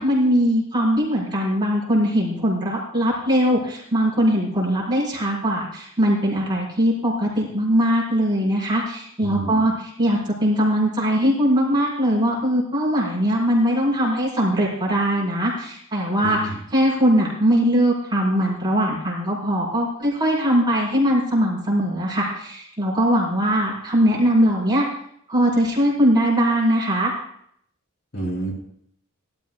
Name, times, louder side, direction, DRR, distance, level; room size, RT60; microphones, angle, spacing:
voice 1, 0.0-24.9 25.3-27.1, equal, 20° right, -6 dB, 4.3 m, -21 dB
voice 2, 9.2-9.6 16.2-16.6 28.1-28.5, right 2 dB, 50° left, -2 dB, 3.2 m, -29 dB
17.0 x 12.5 x 2.4 m, 0.69 s
head